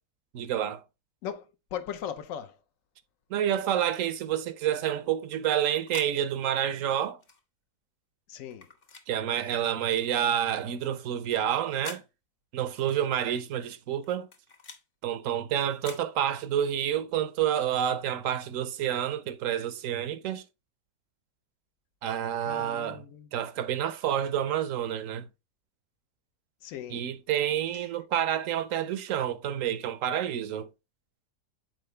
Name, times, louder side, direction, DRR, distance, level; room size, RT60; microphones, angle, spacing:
voice 1, 0.3-0.8 3.3-7.2 9.1-12.0 12.5-14.3 15.0-20.4 22.0-23.0 23.3-25.3 26.9-30.7, right 10 dB, 65° right, 0.9 m, -29 dB
voice 2, 1.7-2.6 8.3-8.7 22.4-23.3 26.6-27.0, left 9 dB, 65° left, 1.0 m, -38 dB
sound 1, 3.8-4.0 5.3-6.1 7.2-7.4 8.5-9.1 9.9-10.1 11.3-12.1 12.9-13.1 14.0-14.8 15.6-16.1, left 4 dB, 40° left, 1.0 m, -47 dB
7.7 x 4.5 x 3.2 m
omnidirectional pair, 1.7 m